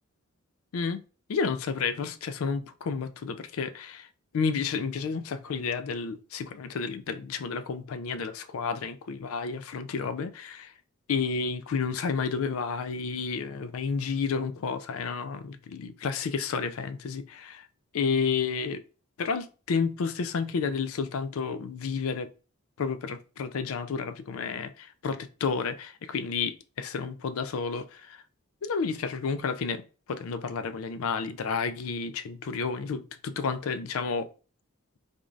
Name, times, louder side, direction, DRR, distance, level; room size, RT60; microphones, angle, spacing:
voice 1, 0.7-1.0 1.3-4.1 4.3-10.7 11.1-17.6 17.9-18.8 19.2-22.3 22.8-28.2 28.6-29.8 30.1-34.3, left 5 dB, 75° left, 0.4 m, -31 dB
3.6 x 2.5 x 3.1 m
head